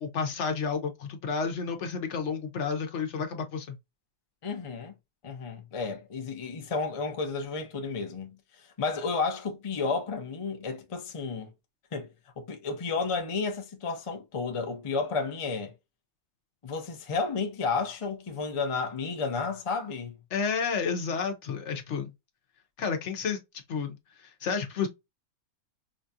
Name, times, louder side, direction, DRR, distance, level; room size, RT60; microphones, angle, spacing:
voice 1, 0.0-3.7 20.3-22.1 22.8-23.4 23.7-24.9, left 5 dB, 60° left, 1.0 m, -31 dB
voice 2, 4.4-4.9 5.2-8.4 8.8-11.5 11.9-12.1 12.4-15.7 16.6-20.2, left 4 dB, 40° left, 0.4 m, -32 dB
5.0 x 2.4 x 2.6 m
omnidirectional pair, 1.5 m